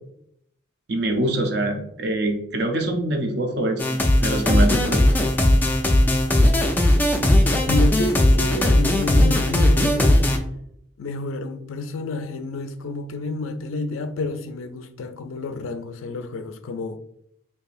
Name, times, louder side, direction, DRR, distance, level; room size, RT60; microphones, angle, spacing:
voice 1, 0.9-3.8 4.2-5.0, right 1 dB, 55° right, 0.6 m, -24 dB
sound 1, 3.8-10.4, left 1 dB, 10° left, 0.3 m, -18 dB
voice 2, 7.7-10.2 11.0-17.0, left 2 dB, 85° left, 0.4 m, -29 dB
4.6 x 2.8 x 2.5 m
head